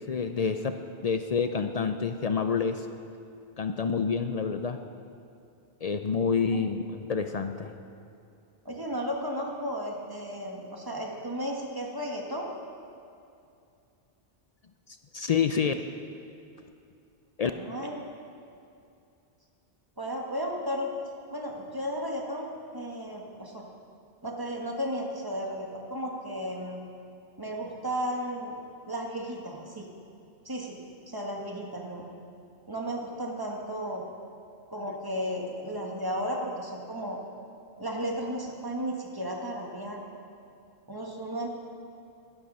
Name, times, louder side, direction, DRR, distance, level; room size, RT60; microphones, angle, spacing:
voice 1, 0.0-2.9 3.6-4.8 5.8-7.7 15.1-15.7 17.4-17.5 34.9-35.0, left 6 dB, 55° left, 8 dB, 0.4 m, -28 dB
voice 2, 8.6-12.5 17.5-18.0 20.0-20.9 21.3-23.6 24.2-26.8 27.4-28.6 28.9-29.9 30.4-30.8 31.1-32.1 32.7-34.0 34.7-37.2 37.8-40.0 40.9-41.5, equal, 20° right, -1 dB, 1.4 m, -34 dB
12.0 x 11.5 x 5.4 m, 2.5 s
omnidirectional pair, 1.1 m